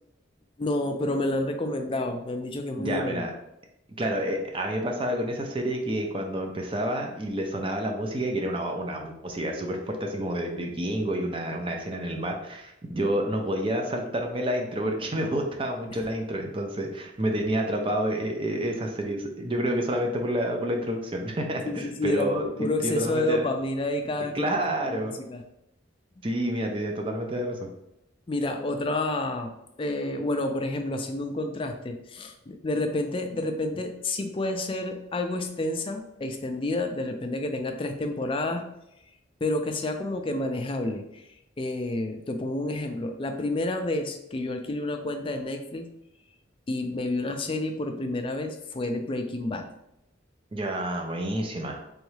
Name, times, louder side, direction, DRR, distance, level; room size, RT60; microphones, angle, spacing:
voice 1, 0.6-3.2 21.6-24.4 24.8-25.0 25.3-25.4 26.2-26.3 28.3-29.5 29.8-38.7 39.4-41.2 41.6-45.9 46.7-49.7, left 2 dB, 25° left, 5 dB, 0.4 m, -29 dB
voice 2, 2.8-3.3 4.0-22.4 22.8-23.5 24.3-25.2 26.2-27.7 50.5-51.8, right 1 dB, 25° right, 2 dB, 0.5 m, -29 dB
3.5 x 3.1 x 3.2 m, 0.83 s
head